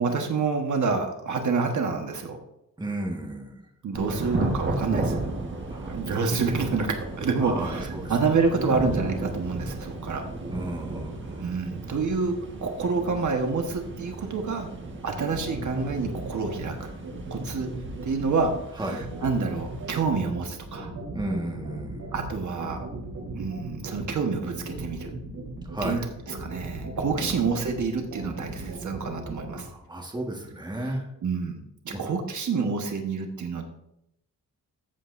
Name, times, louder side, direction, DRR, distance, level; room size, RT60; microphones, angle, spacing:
voice 1, 0.0-2.4 3.8-5.2 5.8-10.2 11.4-12.3 12.6-14.7 15.0-16.9 17.3-17.7 18.0-20.9 22.1-22.8 23.3-25.1 25.8-26.0 26.3-29.7 30.8-30.9 31.2-33.6, right 4 dB, 60° right, 3 dB, 1.3 m, -28 dB
voice 2, 2.8-3.7 5.7-6.0 7.4-8.1 8.5-8.9 10.5-11.5 18.8-19.1 21.1-22.0 25.7-26.1 27.2-27.4 29.5-31.1 31.9-32.0, right 1 dB, 15° right, 0 dB, 1.5 m, -33 dB
Thunder / Rain, 4.0-20.2, right 2 dB, 35° right, 1.5 m, -35 dB
sound 1, 14.8-29.6, right 3 dB, 85° right, 3.6 m, -37 dB
14.0 x 7.8 x 2.6 m, 0.80 s
wide cardioid pair, 130°, 33 cm